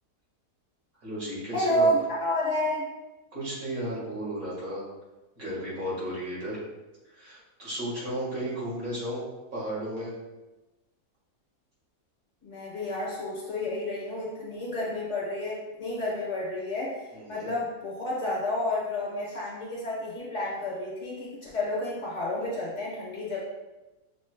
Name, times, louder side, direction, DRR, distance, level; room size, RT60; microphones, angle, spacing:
voice 1, 1.0-1.9 3.3-4.8 5.4-6.6 7.0-9.2 9.5-10.1 17.1-17.5, equal, 65° right, -7 dB, 2.1 m, -34 dB
voice 2, 1.5-2.8 12.4-23.4, left 1 dB, 55° left, -5 dB, 1.4 m, -30 dB
6.4 x 3.1 x 2.2 m, 1.1 s
omnidirectional pair, 1.7 m